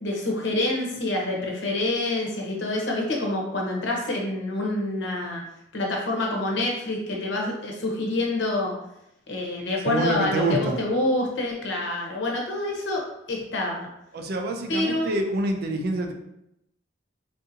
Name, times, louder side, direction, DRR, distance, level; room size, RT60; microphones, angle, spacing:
voice 1, 0.0-5.4 5.7-8.7 9.3-13.9 14.7-15.2, left 2 dB, 70° left, -1 dB, 0.8 m, -27 dB
voice 2, 9.8-10.8 14.1-16.1, right 2 dB, 55° right, 4 dB, 0.4 m, -26 dB
3.7 x 2.6 x 2.6 m, 0.82 s
head